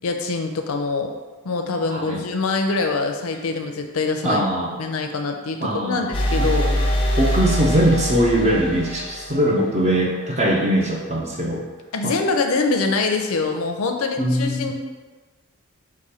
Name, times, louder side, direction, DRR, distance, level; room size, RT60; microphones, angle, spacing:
voice 1, 0.0-1.1 1.4-4.4 4.8-6.8 11.9-14.7, left 3 dB, 80° left, 4 dB, 0.5 m, -24 dB
voice 2, 1.9-2.2 4.2-4.8 5.6-6.1 6.4-6.5 7.2-11.7 12.0-12.2 14.2-14.7, right 1 dB, 30° right, -2 dB, 0.5 m, -21 dB
sound 1, 6.1-9.9, equal, 25° left, 0.4 m, -23 dB
4.9 x 2.2 x 4.2 m, 1.3 s
head